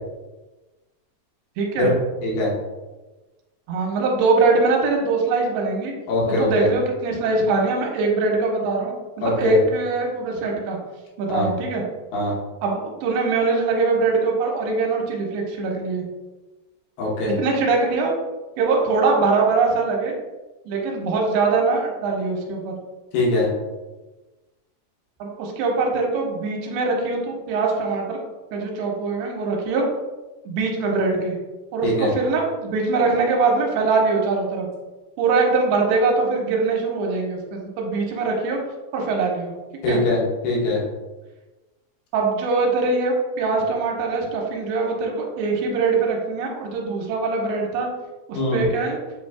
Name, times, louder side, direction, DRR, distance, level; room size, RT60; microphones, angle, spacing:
voice 1, 1.6-1.9 3.7-5.9 6.3-10.8 11.2-11.8 12.6-16.0 17.4-18.1 18.6-20.1 20.7-22.7 25.2-28.2 28.5-29.9 30.5-31.4 31.7-34.7 35.2-38.6 38.9-39.5 39.9-40.0 42.1-47.9 48.3-49.0, right 3 dB, 85° right, 0 dB, 2.6 m, -22 dB
voice 2, 6.1-6.7 9.2-9.6 11.3-11.5 12.1-12.3 17.0-17.3 23.1-23.5 31.8-32.1 39.8-40.8 48.3-48.6, left 2 dB, 80° left, -4 dB, 2.9 m, -22 dB
7.6 x 2.6 x 2.3 m, 1.1 s
omnidirectional pair, 4.6 m